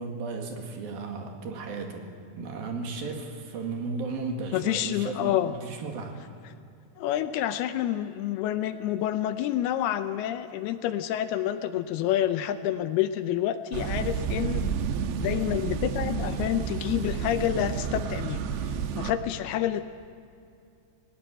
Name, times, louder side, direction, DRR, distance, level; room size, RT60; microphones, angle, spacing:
voice 1, 0.0-2.1 2.4-6.2, right 4 dB, 65° right, 3 dB, 3.5 m, -35 dB
voice 2, 4.5-5.5 7.0-14.7 15.2-18.4 18.9-19.8, left 12 dB, 80° left, 11 dB, 2.5 m, -28 dB
sound 1, 13.7-19.1, right 6 dB, 80° right, 3.0 m, -30 dB
20.5 x 18.0 x 8.8 m, 2.4 s
omnidirectional pair, 4.8 m